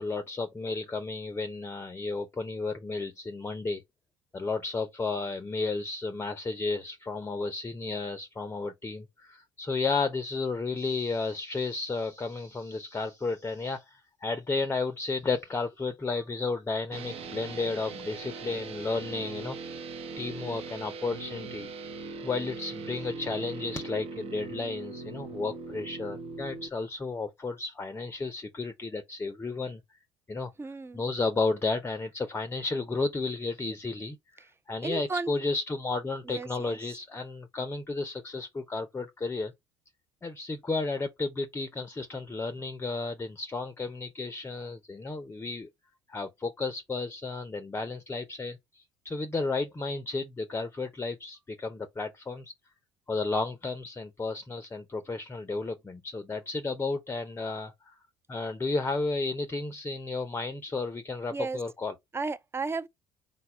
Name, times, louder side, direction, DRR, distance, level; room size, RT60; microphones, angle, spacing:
voice 1, 0.0-3.8 4.3-19.6 20.2-21.7 22.2-29.8 30.3-30.5 30.9-39.5 40.2-45.7 46.1-52.5 53.1-57.7 58.3-62.0, left 3 dB, 20° left, 0.6 m, -33 dB
sound 1, 16.9-26.7, right 4 dB, 55° right, 0.8 m, -40 dB
voice 2, 30.6-31.0 34.8-35.3 36.3-36.8 61.3-61.6 62.1-62.9, right 4 dB, 20° right, 0.5 m, -33 dB
4.0 x 2.3 x 4.3 m
hypercardioid pair, 70°, 12 cm